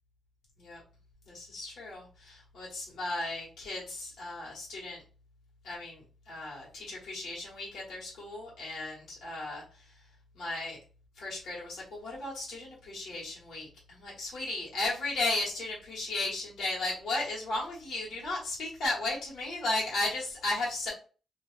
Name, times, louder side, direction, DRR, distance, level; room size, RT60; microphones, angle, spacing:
voice 1, 1.3-5.0 5.6-9.9 10.3-10.8 11.2-20.9, left 2 dB, 65° left, -6 dB, 1.2 m, -35 dB
2.5 x 2.3 x 3.2 m, 0.37 s
cardioid pair, 135°, 0 cm